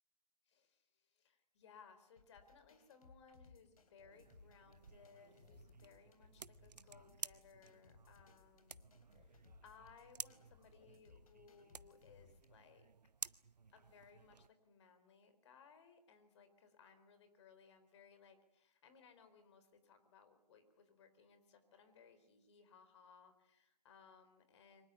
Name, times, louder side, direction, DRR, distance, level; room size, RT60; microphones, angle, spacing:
voice 1, 0.5-8.9 9.2-12.9 13.7-24.9, left 6 dB, 45° left, 10 dB, 4.2 m, -64 dB
sound 1, 2.2-12.4, left 4 dB, 60° left, 3.8 m, -66 dB
sound 2, 4.1-14.5, right 5 dB, 80° right, 0.8 m, -54 dB
24.5 x 19.0 x 9.5 m, 0.85 s
figure-of-eight pair, 135°, 21 cm